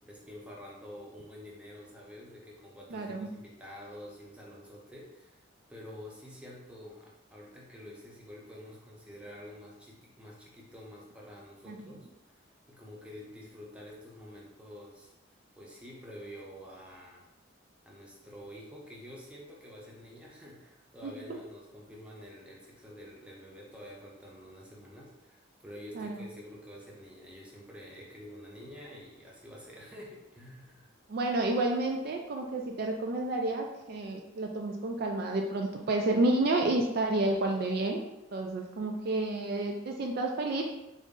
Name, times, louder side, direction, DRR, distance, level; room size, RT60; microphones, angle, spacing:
voice 1, 0.0-5.4 5.7-12.1 12.3-15.1 15.6-17.2 17.8-30.9, equal, 5° right, -4 dB, 0.6 m, -48 dB
voice 2, 2.9-3.3 11.7-11.8 21.0-21.1 25.9-26.3 31.1-38.0 38.3-40.6, right 2 dB, 50° right, 2 dB, 0.3 m, -30 dB
3.8 x 2.0 x 3.6 m, 0.93 s
head